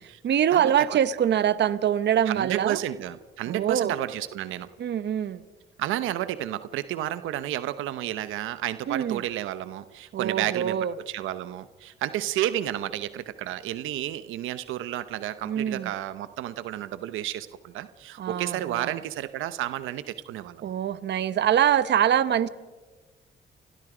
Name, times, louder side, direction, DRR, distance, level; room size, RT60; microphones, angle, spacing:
voice 1, 0.0-2.8 3.5-4.0 4.8-5.4 8.9-9.2 10.1-10.9 15.4-15.9 18.2-19.0 20.6-22.5, right 10 dB, 60° right, 14 dB, 1.1 m, -24 dB
voice 2, 2.3-4.7 5.8-20.7, right 13 dB, 90° right, 12 dB, 0.9 m, -31 dB
29.0 x 22.0 x 5.0 m, 1.3 s
cardioid pair, 90°, 20 cm